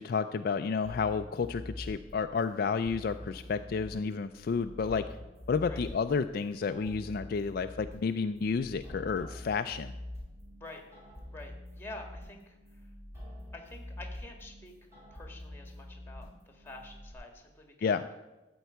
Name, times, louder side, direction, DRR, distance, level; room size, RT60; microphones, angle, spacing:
voice 1, 0.0-5.1 5.5-9.9 17.8-18.0, left 5 dB, 50° left, 9 dB, 0.3 m, -31 dB
sound 1, 0.8-17.1, left 1 dB, 15° right, 3.3 m, -46 dB
voice 2, 3.3-3.7 5.7-5.8 10.6-10.8 11.3-12.9 13.5-18.1, left 2 dB, 10° left, 3 dB, 1.6 m, -48 dB
13.0 x 4.6 x 8.0 m, 1.1 s
head